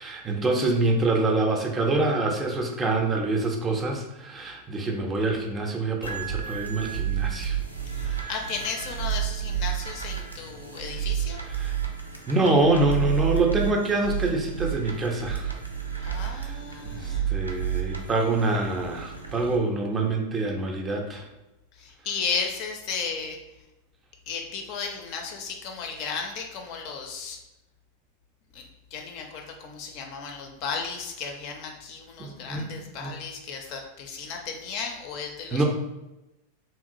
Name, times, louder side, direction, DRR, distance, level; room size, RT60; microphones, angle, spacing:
voice 1, 0.0-7.6 8.0-8.3 11.6-11.8 12.3-15.5 16.0-16.6 16.9-21.3 32.2-32.7 33.0-33.1 35.5-35.6, right 2 dB, 20° right, 2 dB, 0.4 m, -26 dB
sound 1, 6.0-19.6, right 9 dB, 85° right, 0.4 m, -31 dB
voice 2, 7.9-11.4 16.0-17.3 21.8-23.4 24.3-27.4 28.5-28.6 28.9-35.6, left 5 dB, 45° left, 3 dB, 0.4 m, -34 dB
2.9 x 2.3 x 2.6 m, 0.97 s
figure-of-eight pair, 90°, 0 cm